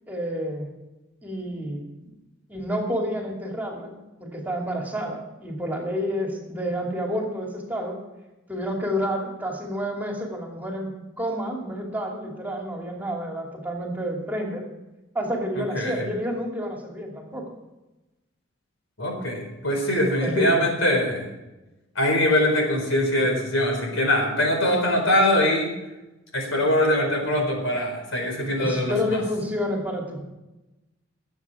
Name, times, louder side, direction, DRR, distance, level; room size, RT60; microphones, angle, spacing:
voice 1, 0.1-0.7 1.2-1.8 2.5-3.9 4.2-8.0 8.5-10.9 11.2-14.6 15.1-17.5 20.2-20.6 28.6-30.2, equal, 10° right, 0 dB, 2.4 m, -29 dB
voice 2, 15.7-16.1 19.0-21.3 22.0-25.7 26.3-28.9, left 1 dB, 80° left, 2 dB, 4.4 m, -22 dB
21.5 x 8.0 x 4.8 m, 1.0 s
head